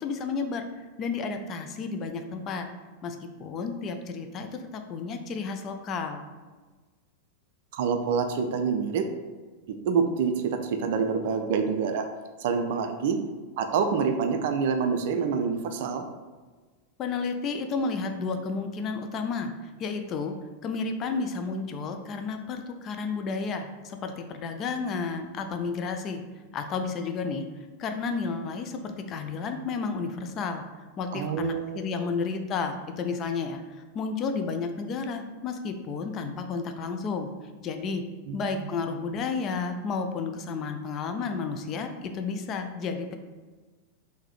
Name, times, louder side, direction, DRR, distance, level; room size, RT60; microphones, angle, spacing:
voice 1, 0.0-2.7 3.0-6.3 17.0-20.3 20.6-26.2 26.5-27.4 27.8-30.6 31.0-37.3 37.6-38.0 38.3-43.2, left 4 dB, 30° left, 6 dB, 0.3 m, -32 dB
voice 2, 7.7-9.0 9.9-12.1 12.4-13.2 13.6-16.0 31.1-32.1 38.3-38.4, right 6 dB, 50° right, 6 dB, 0.3 m, -27 dB
3.7 x 2.7 x 3.0 m, 1.3 s
figure-of-eight pair, 90°, 0 cm